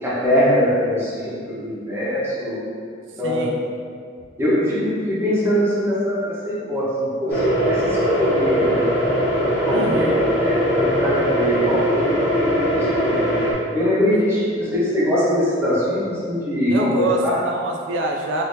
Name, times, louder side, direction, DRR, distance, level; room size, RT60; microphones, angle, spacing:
voice 1, 0.0-2.6 3.2-3.5 4.4-8.8 9.4-13.3 13.7-17.4, equal, 15° right, -9 dB, 0.9 m, -22 dB
voice 2, 3.2-3.6 9.7-10.2 14.1-14.2 16.7-18.4, right 1 dB, 85° right, 1 dB, 0.3 m, -25 dB
sound 1, 7.3-13.5, equal, 70° left, 0.8 m, -20 dB
3.6 x 2.6 x 2.6 m, 2.1 s
head